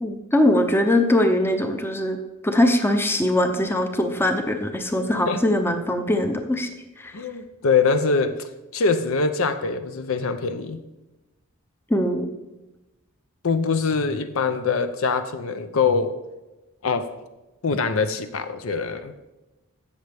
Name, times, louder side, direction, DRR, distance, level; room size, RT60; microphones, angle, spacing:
voice 1, 0.0-2.2 2.4-6.7 7.0-7.1 11.9-12.3, left 1 dB, 10° left, 6 dB, 0.7 m, -21 dB
voice 2, 7.1-10.8 13.4-16.2 16.8-17.1 17.6-19.1, left 4 dB, 70° left, 10 dB, 0.7 m, -23 dB
15.5 x 6.6 x 3.5 m, 1.0 s
head